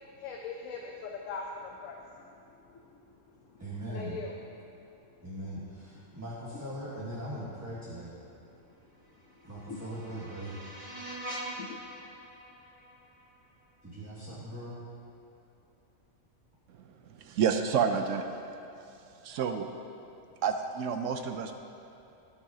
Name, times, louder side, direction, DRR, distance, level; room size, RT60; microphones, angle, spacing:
voice 1, 0.1-2.0 2.8-2.9 3.5-3.6 3.9-4.3 9.7-9.9 11.6-12.0, left 4 dB, 80° left, 0 dB, 1.1 m, -40 dB
voice 2, 3.6-4.2 5.2-8.1 9.4-10.6 13.8-14.8, right 1 dB, 15° right, -9 dB, 1.3 m, -40 dB
sound 1, 9.0-14.0, right 1 dB, 35° right, 1.6 m, -44 dB
voice 3, 17.2-18.2 19.2-19.7 20.4-21.6, right 7 dB, 75° right, 6 dB, 0.9 m, -29 dB
17.0 x 6.2 x 2.8 m, 2.9 s
omnidirectional pair, 1.3 m